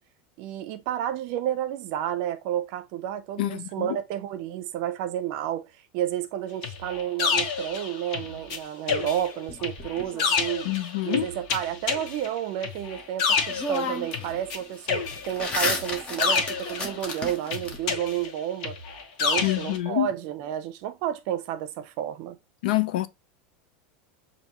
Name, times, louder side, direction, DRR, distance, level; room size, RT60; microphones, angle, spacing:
voice 1, 0.4-5.7 5.9-10.7 11.0-18.8 19.2-22.4, right 11 dB, 45° right, 0.6 m, -31 dB
voice 2, 3.4-4.0 10.7-11.3 19.4-20.1 22.6-23.1, left 15 dB, 75° left, 0.5 m, -26 dB
sound 1, 6.6-8.6 8.9-14.6 14.9-17.1 17.5-19.8, left 5 dB, 55° left, 1.1 m, -29 dB
sound 2, 9.5-10.8 13.0-13.1 13.5-14.3 14.6-17.8, left 3 dB, 20° left, 0.9 m, -32 dB
6.7 x 2.7 x 2.9 m
supercardioid pair, 170°, 5 cm